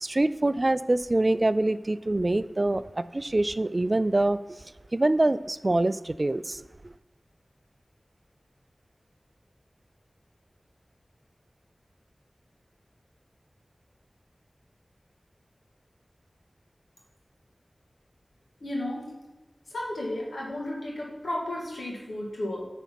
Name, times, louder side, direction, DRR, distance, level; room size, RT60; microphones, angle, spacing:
voice 1, 0.0-4.6 4.9-6.9, right 2 dB, 40° right, 0.3 m, -25 dB
voice 2, 18.6-19.1 19.7-22.7, left 1 dB, 90° left, 2.0 m, -33 dB
9.1 x 4.1 x 5.8 m
wide cardioid pair, 70°, 0 cm